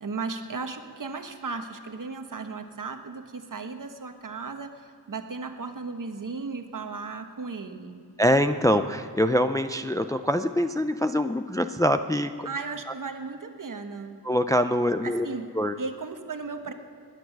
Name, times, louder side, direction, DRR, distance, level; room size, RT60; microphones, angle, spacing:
voice 1, 0.0-8.0 12.4-14.2 15.0-15.5 15.8-16.7, right 4 dB, 50° right, 6 dB, 1.2 m, -35 dB
voice 2, 8.2-12.3 14.2-15.3 15.5-15.7, equal, 10° left, 9 dB, 0.4 m, -24 dB
21.5 x 9.3 x 6.4 m, 2.4 s
wide cardioid pair, 105°, 39 cm